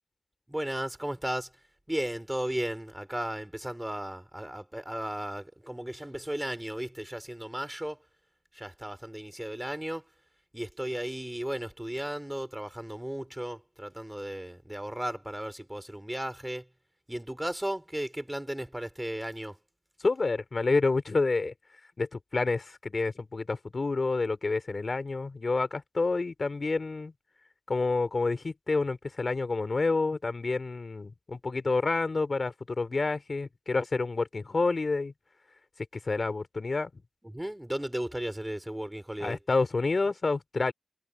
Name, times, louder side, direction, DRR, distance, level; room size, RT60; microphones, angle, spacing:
voice 1, 0.5-1.6 1.9-8.0 8.5-10.1 10.5-16.7 17.1-19.6 37.2-39.4, right 1 dB, 15° right, 3.4 m, -35 dB
voice 2, 20.0-21.5 22.0-27.1 27.7-35.1 36.0-36.9 39.2-40.7, left 3 dB, 70° left, 2.9 m, -28 dB
wide cardioid pair, 50°, 0 cm